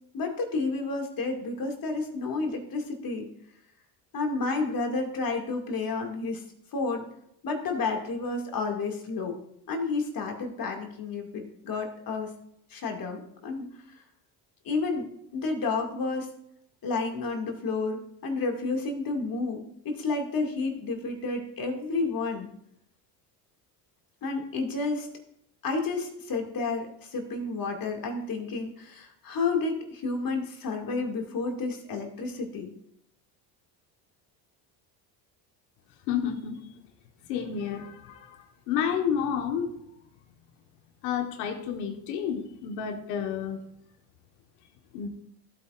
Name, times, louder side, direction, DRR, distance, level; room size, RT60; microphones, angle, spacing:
voice 1, 0.1-3.3 4.1-6.4 6.7-7.0 7.4-9.4 9.7-12.3 12.7-13.8 14.6-16.3 16.8-22.5 24.2-25.1 25.6-32.7, left 3 dB, 45° left, 2 dB, 2.4 m, -31 dB
voice 2, 36.1-36.6 37.3-39.8 41.0-43.6 44.9-45.1, left 8 dB, 85° left, 6 dB, 1.5 m, -30 dB
15.0 x 9.1 x 2.5 m, 0.74 s
supercardioid pair, 85°, 46 cm